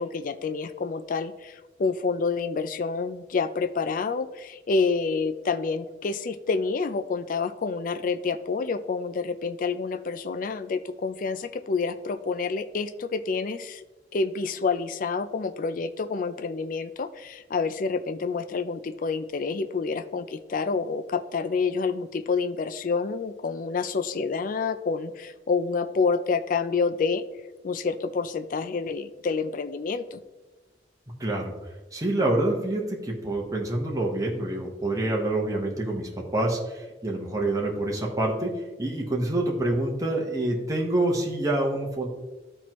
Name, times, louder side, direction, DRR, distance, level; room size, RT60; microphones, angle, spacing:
voice 1, 0.0-13.8 14.1-27.2 27.6-30.2, left 4 dB, 50° left, 10 dB, 0.4 m, -28 dB
voice 2, 31.2-31.5 31.9-38.5 38.8-42.1, right 1 dB, 20° right, -2 dB, 1.1 m, -27 dB
12.5 x 4.5 x 3.0 m, 1.2 s
head